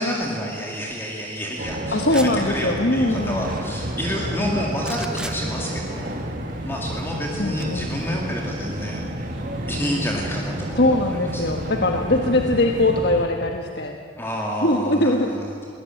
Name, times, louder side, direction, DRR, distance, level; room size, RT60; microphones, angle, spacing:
voice 1, 0.0-6.1 6.6-9.0 9.7-11.5 14.2-15.5, equal, 10° left, -1 dB, 2.3 m, -29 dB
sound 1, 1.6-13.2, right 1 dB, 45° right, 1.8 m, -31 dB
voice 2, 1.9-3.6 7.4-7.9 10.8-13.9 14.6-15.3, left 1 dB, 60° left, 3 dB, 1.4 m, -21 dB
sound 2, 2.0-2.4 4.8-5.4 7.6-7.7, right 1 dB, 5° right, 0.8 m, -34 dB
sound 3, 3.0-13.0, equal, 85° right, 5.6 m, -37 dB
22.5 x 18.5 x 9.1 m, 2.3 s
head